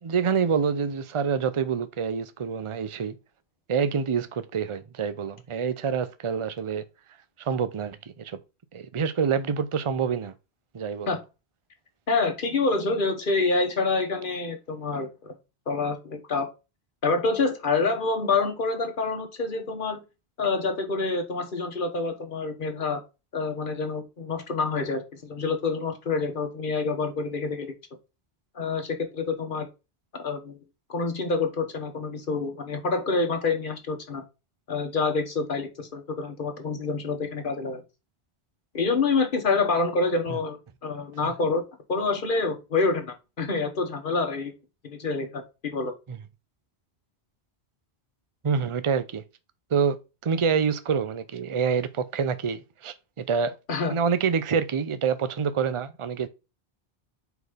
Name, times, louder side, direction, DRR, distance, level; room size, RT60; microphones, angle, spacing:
voice 1, 0.0-3.1 3.7-6.8 7.4-8.4 8.7-10.3 10.7-11.1 40.3-40.4 46.1-46.2 48.4-49.2 49.7-50.0 50.2-53.5 53.9-56.3, right 6 dB, 35° right, 0.6 m, -27 dB
voice 2, 12.1-15.3 15.7-16.5 17.0-20.0 20.4-23.0 23.3-27.7 28.5-29.7 30.1-30.6 30.9-34.2 34.7-37.8 38.7-41.6 41.9-44.5 44.8-45.9 53.7-54.0, left 3 dB, 55° left, 1.4 m, -27 dB
4.7 x 4.1 x 5.0 m
omnidirectional pair, 1.1 m